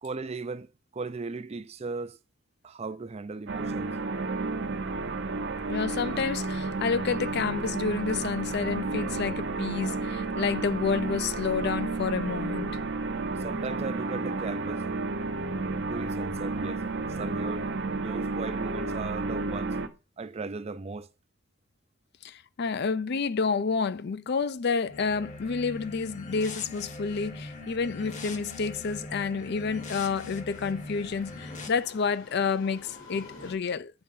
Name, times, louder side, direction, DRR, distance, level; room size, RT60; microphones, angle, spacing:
voice 1, 0.0-2.2 2.6-4.0 13.4-14.9 15.8-16.8 17.1-19.8 20.2-21.1, right 3 dB, 30° right, 0.4 m, -37 dB
sound 1, 3.5-19.9, right 3 dB, 60° right, 0.8 m, -31 dB
voice 2, 5.7-12.7 22.2-33.9, left 5 dB, 55° left, 0.5 m, -29 dB
sound 2, 24.9-31.7, left 2 dB, 35° left, 1.1 m, -42 dB
sound 3, 25.0-33.5, left 3 dB, 75° left, 4.8 m, -52 dB
8.8 x 3.9 x 5.5 m
head